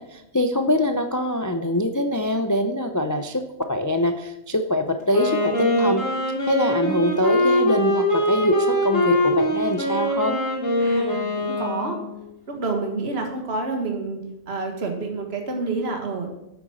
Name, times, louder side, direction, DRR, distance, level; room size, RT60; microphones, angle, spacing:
voice 1, 0.0-3.4 3.7-6.0 6.4-10.4, left 1 dB, 25° left, 6 dB, 0.4 m, -23 dB
Wind instrument woodwind instrument, 5.0-12.2, left 1 dB, 65° left, 3.3 m, -22 dB
voice 2, 10.8-12.0 12.5-16.3, right 3 dB, 50° right, 3 dB, 1.9 m, -28 dB
9.0 x 8.1 x 6.3 m, 0.89 s
omnidirectional pair, 1.4 m